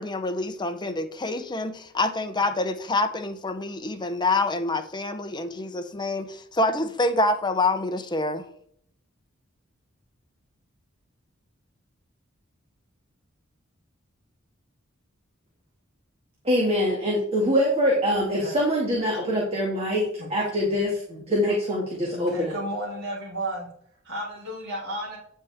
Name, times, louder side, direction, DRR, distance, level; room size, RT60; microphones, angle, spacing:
voice 1, 0.0-8.5, left 2 dB, 20° left, 8 dB, 0.8 m, -26 dB
voice 2, 16.4-20.0 20.3-22.6, equal, 30° right, -3 dB, 2.2 m, -24 dB
voice 3, 22.1-23.7 24.0-25.2, right 1 dB, 55° right, -5 dB, 2.8 m, -32 dB
9.6 x 7.3 x 3.6 m, 0.65 s
head